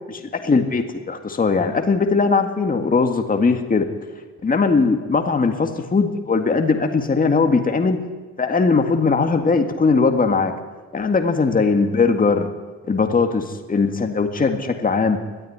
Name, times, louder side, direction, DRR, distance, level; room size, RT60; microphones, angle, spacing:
voice 1, 0.1-3.9 4.4-8.0 8.4-10.5 10.9-12.5 12.9-15.2, left 4 dB, 30° left, 5 dB, 1.9 m, -19 dB
20.5 x 13.5 x 9.6 m, 1.3 s
cardioid pair, 90°, 30 cm